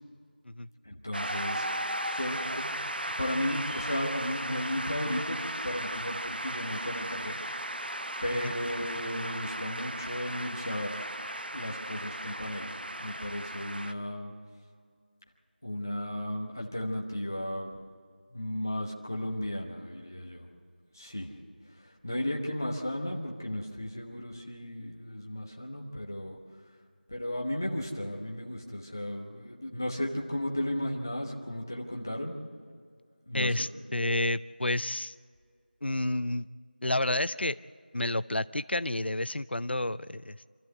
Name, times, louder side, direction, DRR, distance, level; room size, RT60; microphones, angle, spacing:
voice 1, 0.8-2.8 3.2-7.4 8.2-11.0 11.5-14.3 15.6-17.7 18.3-20.5 20.9-21.3 21.6-26.4 27.1-32.3 33.3-33.7, left 1 dB, 20° left, 0 dB, 1.1 m, -35 dB
Shout / Cheering / Applause, 1.1-13.9, right 1 dB, 65° right, 0.9 m, -36 dB
voice 2, 33.3-35.1 35.8-36.5 36.8-37.6 37.9-40.3, left 1 dB, 85° left, 15 dB, 0.5 m, -30 dB
26.5 x 13.5 x 8.1 m, 2.1 s
figure-of-eight pair, 180°, 6 cm